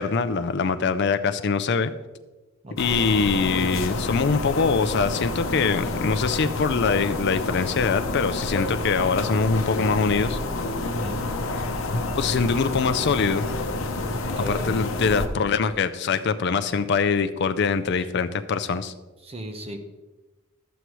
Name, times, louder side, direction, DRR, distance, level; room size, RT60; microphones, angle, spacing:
voice 1, 0.0-1.9 2.7-10.4 12.1-13.4 14.5-18.9, left 5 dB, 55° left, 10 dB, 0.5 m, -23 dB
voice 2, 2.6-3.2 10.8-11.2 14.1-14.8 19.2-19.8, right 1 dB, 30° right, 5 dB, 0.8 m, -36 dB
sound 1, 2.8-15.3, left 2 dB, 70° left, 0.8 m, -29 dB
11.0 x 8.1 x 3.1 m, 1.2 s
head